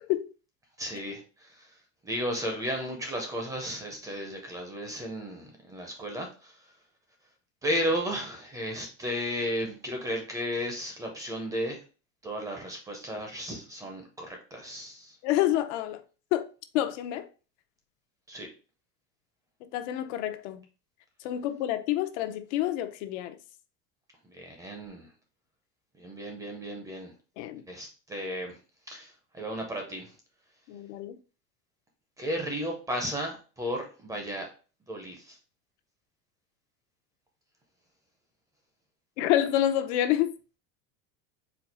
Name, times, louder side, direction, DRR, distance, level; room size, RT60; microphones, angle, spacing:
voice 1, 0.8-1.7 2.0-6.7 7.6-11.8 12.2-15.2 18.3-18.5 24.2-25.1 26.0-27.1 27.7-28.6 28.9-30.1 32.2-34.5 34.9-35.4, equal, 10° right, 0.5 m, -34 dB
voice 2, 15.2-16.0 16.3-16.5 16.7-17.3 19.6-20.6 21.2-23.4 27.4-27.6 30.7-31.2 39.2-40.3, left 12 dB, 75° left, 0.6 m, -28 dB
4.4 x 2.3 x 3.9 m
cardioid pair, 170°, 35 cm